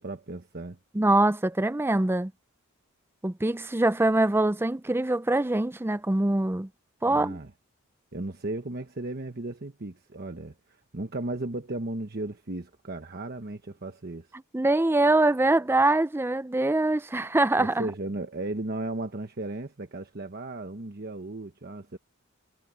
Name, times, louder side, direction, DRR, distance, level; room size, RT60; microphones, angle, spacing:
voice 1, 0.0-0.8 7.1-7.5 8.1-14.3 17.6-22.0, right 2 dB, 50° right, 1.1 m, -35 dB
voice 2, 0.9-2.3 3.2-6.7 7.0-7.4 14.5-17.9, right 2 dB, 10° right, 0.5 m, -23 dB
head